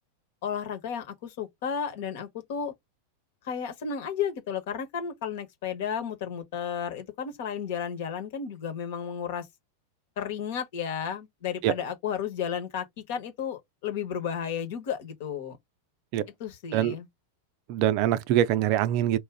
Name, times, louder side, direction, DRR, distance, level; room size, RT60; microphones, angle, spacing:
voice 1, 0.4-2.7 3.4-9.5 10.2-15.6 16.4-17.1, left 7 dB, 50° left, 1.2 m, -33 dB
voice 2, 17.7-19.2, right 11 dB, 45° right, 0.5 m, -24 dB
4.6 x 2.5 x 3.6 m
figure-of-eight pair, 90°, 0 cm